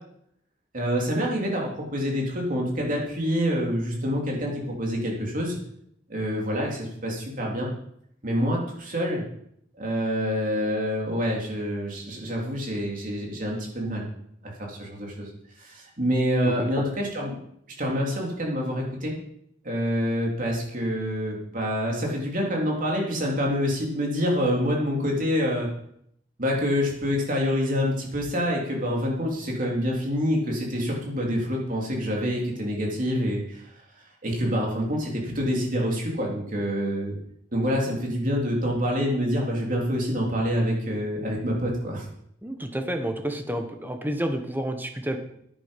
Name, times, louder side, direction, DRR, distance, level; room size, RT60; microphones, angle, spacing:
voice 1, 0.7-5.6 6.1-7.7 8.2-9.2 9.7-14.1 14.4-15.3 15.6-17.4 17.8-19.1 19.6-25.7 26.4-33.6 34.2-37.1 37.5-42.1, equal, 45° right, -1 dB, 3.3 m, -26 dB
voice 2, 42.4-45.2, right 1 dB, 10° right, 6 dB, 1.2 m, -29 dB
10.0 x 9.9 x 5.3 m, 0.71 s
head